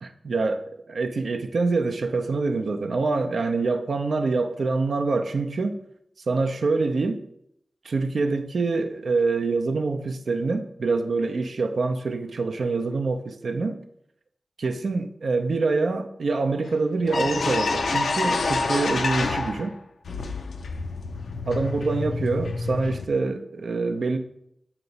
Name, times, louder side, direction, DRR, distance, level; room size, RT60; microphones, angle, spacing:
voice 1, 0.0-5.8 6.3-7.2 7.8-13.8 14.6-19.8 21.5-24.2, right 3 dB, 80° right, 0.5 m, -25 dB
sound 1, 16.7-16.8 17.1-19.7 20.1-23.1, left 3 dB, 90° left, 0.5 m, -27 dB
6.9 x 3.0 x 5.2 m
cardioid pair, 55°, 0 cm